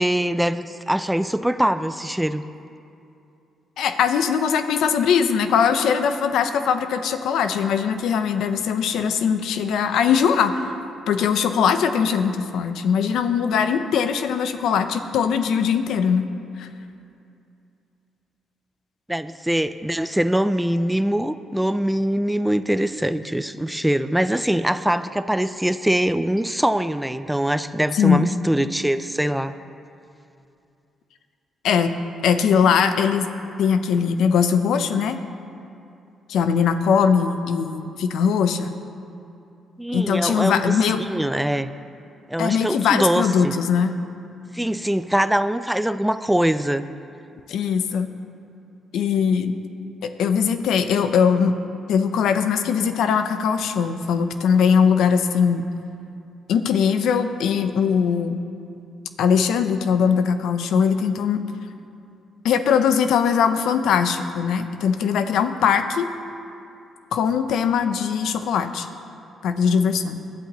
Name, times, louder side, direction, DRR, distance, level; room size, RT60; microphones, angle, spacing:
voice 1, 0.0-2.4 19.1-29.5 39.8-40.6 41.0-41.7 42.3-43.5 44.5-46.9, right 1 dB, 5° right, 12 dB, 0.4 m, -23 dB
voice 2, 3.8-10.7 11.1-16.3 16.6-16.7 28.0-28.3 31.6-31.9 32.2-33.3 33.6-35.2 36.3-38.7 39.9-41.0 42.4-43.9 47.5-48.1 48.9-49.5 50.0-51.5 51.9-55.7 56.5-58.4 59.2-61.4 62.4-66.1 67.1-68.9 69.4-70.2, left 7 dB, 80° left, 9 dB, 0.7 m, -20 dB
20.5 x 11.5 x 3.1 m, 2.6 s
cardioid pair, 90°, 0 cm